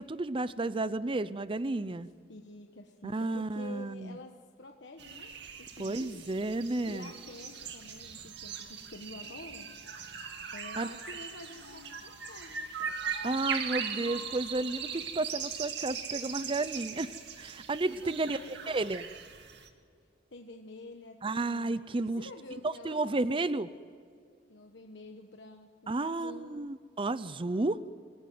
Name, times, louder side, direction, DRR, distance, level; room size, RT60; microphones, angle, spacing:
voice 1, 0.0-2.1 3.0-4.2 5.8-7.1 10.8-10.9 13.2-18.4 18.7-19.1 21.2-22.3 22.6-23.7 25.9-27.8, right 2 dB, 30° right, 14 dB, 0.6 m, -32 dB
voice 2, 2.3-5.3 5.6-6.3 6.9-9.7 10.5-13.2 17.9-18.8 20.3-23.2 24.5-26.5, left 2 dB, 65° left, 3 dB, 1.4 m, -49 dB
sound 1, 5.0-19.7, right 6 dB, 65° right, 2.2 m, -40 dB
26.0 x 16.5 x 9.4 m, 2.2 s
head